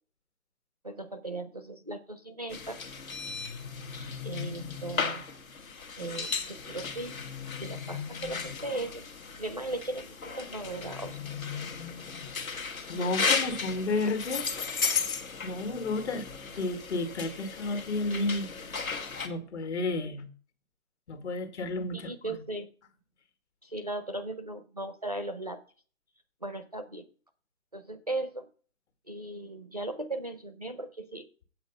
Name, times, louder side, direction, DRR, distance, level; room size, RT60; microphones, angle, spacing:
voice 1, 0.8-2.8 4.2-5.2 6.0-7.2 7.6-9.0 9.4-11.2 16.1-16.2 21.9-22.7 23.6-25.6 26.4-27.0 27.7-28.5 29.1-31.3, right 2 dB, 30° right, 0.4 m, -37 dB
sound 1, 2.5-19.3, left 5 dB, 80° left, 1.8 m, -35 dB
sound 2, 3.2-5.1 6.9-8.8 10.6-12.6, left 8 dB, 40° left, 1.0 m, -41 dB
voice 2, 12.9-14.6 15.4-16.3 16.6-18.5 19.2-20.3 21.1-22.4, left 2 dB, 55° left, 1.9 m, -32 dB
8.2 x 7.3 x 5.2 m
hypercardioid pair, 160°, 41 cm